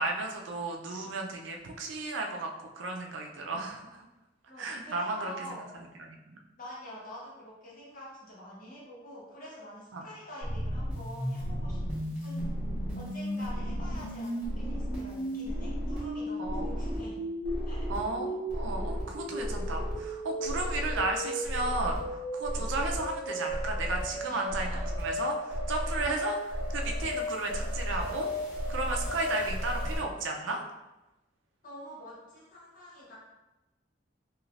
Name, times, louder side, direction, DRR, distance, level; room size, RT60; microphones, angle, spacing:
voice 1, 0.0-4.0 4.6-6.4 9.9-10.0 16.4-16.8 17.9-28.3 28.7-30.6, right 2 dB, 85° right, 2 dB, 0.5 m, -34 dB
voice 2, 4.5-5.6 6.6-11.8 12.2-12.7 12.9-17.3 17.6-17.9 24.3-24.8 25.9-26.2 31.6-33.2, equal, 45° left, -6 dB, 1.1 m, -46 dB
sound 1, 10.4-30.0, equal, 10° right, 1.1 m, -34 dB
3.2 x 3.0 x 2.4 m, 0.99 s
head